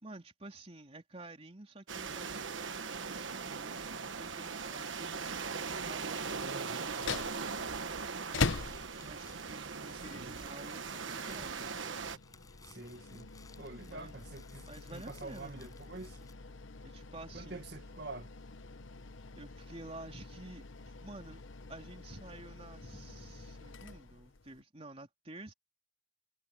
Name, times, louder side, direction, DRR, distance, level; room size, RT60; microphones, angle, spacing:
voice 1, 0.0-5.2 5.7-8.5 9.0-11.7 13.9-14.2 14.7-15.8 16.8-17.6 19.3-21.4 21.7-25.5, right 2 dB, 30° right, 3.5 m, -51 dB
sound 1, 1.9-12.2, right 5 dB, 70° right, 1.3 m, -40 dB
voice 2, 6.4-6.9 10.1-10.4 12.6-13.3 13.6-16.2 17.3-18.3, right 2 dB, 55° right, 2.0 m, -47 dB
sound 2, 6.9-24.6, left 4 dB, 75° left, 1.0 m, -43 dB
sound 3, 8.4-16.3, left 3 dB, 20° left, 5.6 m, -59 dB
head